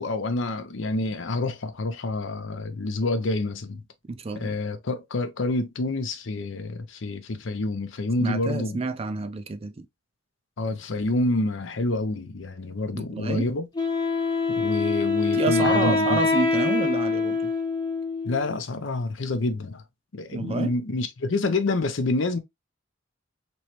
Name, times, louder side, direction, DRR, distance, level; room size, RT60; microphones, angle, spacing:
voice 1, 0.0-3.8 4.3-8.8 10.6-13.7 14.5-16.2 18.2-19.8 20.1-22.4, left 2 dB, 75° left, 0.6 m, -27 dB
voice 2, 4.1-4.6 8.2-9.8 12.9-13.5 15.3-17.5 20.3-20.7, right 4 dB, 30° right, 0.4 m, -29 dB
Wind instrument woodwind instrument, 13.7-18.5, left 4 dB, 20° left, 0.8 m, -24 dB
3.1 x 3.0 x 2.9 m
head